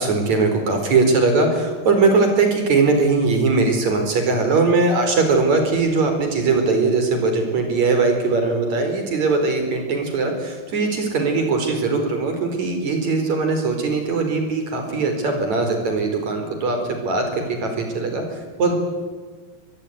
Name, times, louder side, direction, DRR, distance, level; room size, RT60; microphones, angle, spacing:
voice 1, 0.0-18.8, right 3 dB, 45° right, 5 dB, 5.6 m, -20 dB
24.5 x 21.0 x 9.7 m, 1.4 s
omnidirectional pair, 4.4 m